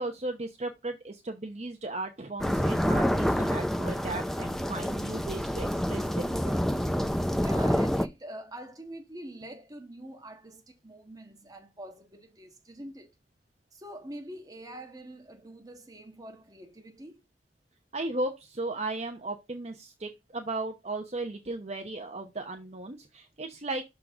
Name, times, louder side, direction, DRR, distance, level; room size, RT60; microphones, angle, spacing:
voice 1, 0.0-6.6 17.9-23.8, right 2 dB, 40° right, 0.8 m, -36 dB
sound 1, 2.4-8.1, equal, ahead, 0.5 m, -27 dB
voice 2, 7.4-13.1 13.7-17.2, right 1 dB, 20° right, 1.4 m, -45 dB
6.4 x 3.9 x 5.9 m
head